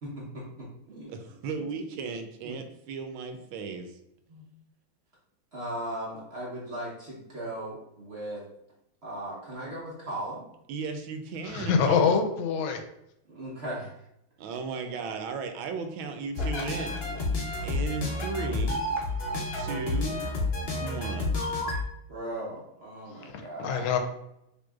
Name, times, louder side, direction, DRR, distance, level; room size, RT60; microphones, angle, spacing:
voice 1, 0.0-1.1 2.4-2.6 4.3-4.4 5.5-8.5 9.0-10.4 13.3-13.9 22.1-24.0, right 1 dB, 50° right, -6 dB, 0.8 m, -37 dB
voice 2, 1.1-3.9 10.7-12.1 14.4-17.0 17.6-18.8 19.5-20.2 20.7-21.4, right 4 dB, 80° right, 6 dB, 1.4 m, -35 dB
voice 3, 11.4-12.8 23.3-24.0, left 6 dB, 80° left, 6 dB, 1.4 m, -25 dB
sound 1, 16.4-21.9, left 2 dB, 55° left, 0.6 m, -30 dB
5.3 x 3.1 x 2.4 m, 0.81 s
omnidirectional pair, 2.2 m